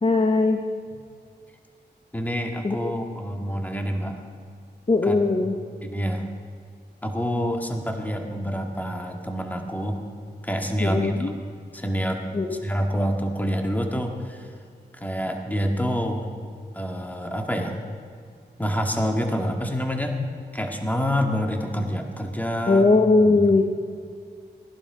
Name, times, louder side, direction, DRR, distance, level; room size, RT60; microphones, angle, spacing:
voice 1, 0.0-0.7 2.6-2.9 4.9-5.6 10.8-11.3 12.3-12.6 22.7-23.6, left 3 dB, 35° left, 4 dB, 1.1 m, -20 dB
voice 2, 2.1-4.2 5.0-5.3 5.8-6.3 7.0-10.0 10.4-11.3 11.7-14.5 14.9-16.3 16.7-17.8 18.6-20.2 20.5-22.9 23.2-23.6, equal, 10° left, 3 dB, 2.1 m, -27 dB
18.0 x 11.5 x 5.0 m, 2.2 s
cardioid pair, 40°, 18 cm